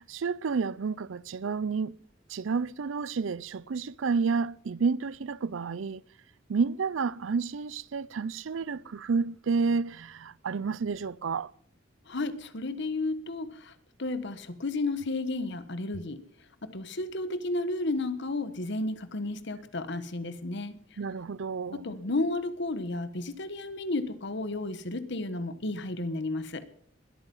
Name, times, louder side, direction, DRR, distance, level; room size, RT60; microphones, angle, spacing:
voice 1, 0.0-2.0 2.3-6.0 6.5-11.5 21.0-21.8, right 5 dB, 80° right, 0.5 m, -30 dB
voice 2, 12.1-13.7 14.0-16.2 16.6-21.0 21.7-26.7, left 2 dB, 65° left, 1.3 m, -32 dB
21.5 x 9.0 x 5.4 m
head